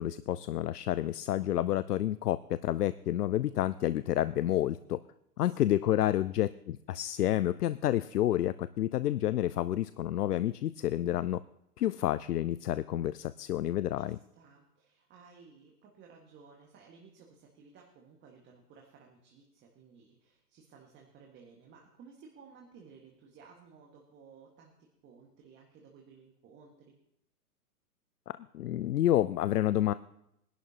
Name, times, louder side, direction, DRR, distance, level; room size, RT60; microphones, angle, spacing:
voice 1, 0.0-5.0 5.4-11.4 11.8-14.2 28.3-29.9, left 12 dB, 75° left, 16 dB, 0.6 m, -29 dB
voice 2, 14.0-27.0, right 5 dB, 25° right, 0 dB, 1.7 m, -57 dB
22.5 x 11.5 x 2.9 m, 0.79 s
hypercardioid pair, 125°, 47 cm